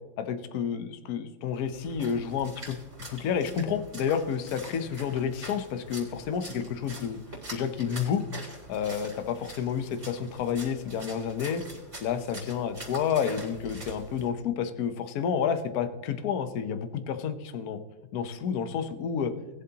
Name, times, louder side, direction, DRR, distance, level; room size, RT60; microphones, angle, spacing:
voice 1, 0.2-2.8 3.1-7.2 7.5-8.2 8.7-11.6 12.0-17.8 18.1-19.3, left 7 dB, 60° left, 10 dB, 1.1 m, -30 dB
Splash splatter, 1.5-14.3, right 1 dB, 25° right, 3.7 m, -45 dB
20.0 x 7.4 x 2.9 m, 1.2 s
omnidirectional pair, 2.2 m